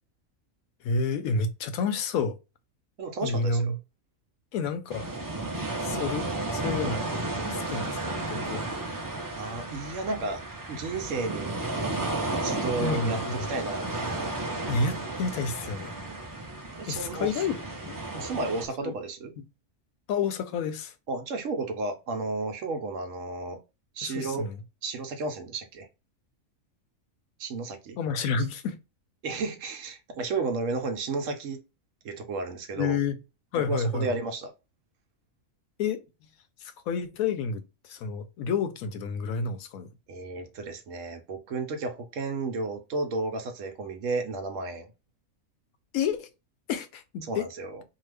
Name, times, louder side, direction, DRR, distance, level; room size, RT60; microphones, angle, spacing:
voice 1, 0.8-2.4 3.2-3.8 4.5-5.1 5.8-7.2 7.5-8.7 12.8-13.5 14.7-15.9 16.9-17.6 17.9-18.0 18.8-18.9 20.1-20.9 24.0-24.6 28.0-28.8 32.7-33.2 33.5-34.1 35.8-36.0 36.6-39.9 45.9-46.3 46.7-47.4, left 4 dB, 80° left, 1.0 m, -30 dB
voice 2, 3.0-3.7 9.3-10.4 10.7-11.6 12.3-13.2 13.5-14.6 16.8-17.4 18.1-19.3 21.1-23.6 24.0-24.5 24.8-25.9 27.4-28.0 29.2-31.6 32.0-33.0 33.7-34.5 40.1-44.9 47.2-47.8, right 3 dB, 70° right, 1.0 m, -33 dB
sound 1, 4.9-18.7, right 2 dB, 35° right, 0.3 m, -33 dB
2.8 x 2.3 x 3.2 m
omnidirectional pair, 1.4 m